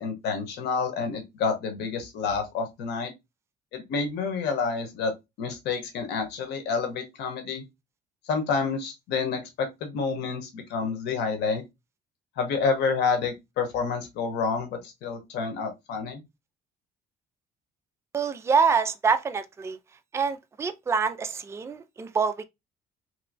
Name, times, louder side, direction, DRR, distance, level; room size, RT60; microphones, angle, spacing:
voice 1, 0.0-3.1 3.7-7.6 8.3-11.6 12.4-16.2, left 5 dB, 80° left, 1.1 m, -29 dB
voice 2, 18.1-19.8 20.1-22.4, right 5 dB, 15° right, 0.4 m, -26 dB
3.3 x 3.0 x 2.6 m
cardioid pair, 110°, 17 cm